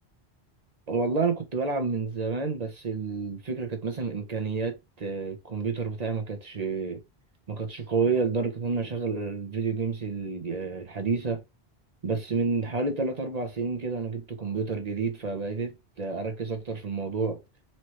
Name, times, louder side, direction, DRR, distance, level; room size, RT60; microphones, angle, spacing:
voice 1, 0.9-7.0 7.5-11.4 12.0-17.4, right 4 dB, 40° right, 0.8 m, -29 dB
4.2 x 3.1 x 3.1 m
omnidirectional pair, 1.1 m